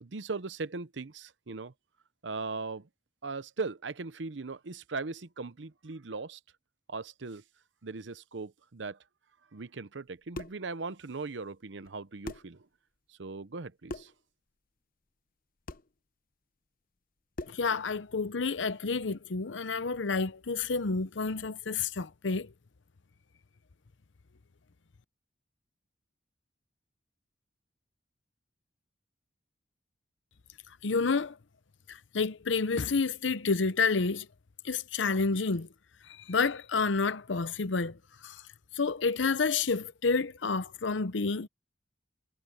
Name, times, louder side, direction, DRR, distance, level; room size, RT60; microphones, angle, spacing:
voice 1, 0.0-1.7 2.2-2.9 3.2-6.4 6.9-7.4 7.8-9.0 9.5-12.7 13.1-14.1, right 4 dB, 75° right, 0.8 m, -39 dB
sound 1, 10.1-10.7 11.8-11.9 12.2-12.6 13.9-14.2 15.7-15.9 17.3-17.7, left 2 dB, 50° left, 0.9 m, -41 dB
voice 2, 17.5-22.5 30.8-31.4 31.9-34.3 34.6-35.7 36.1-38.0 38.2-38.4 38.7-41.5, left 4 dB, 80° left, 0.8 m, -29 dB
head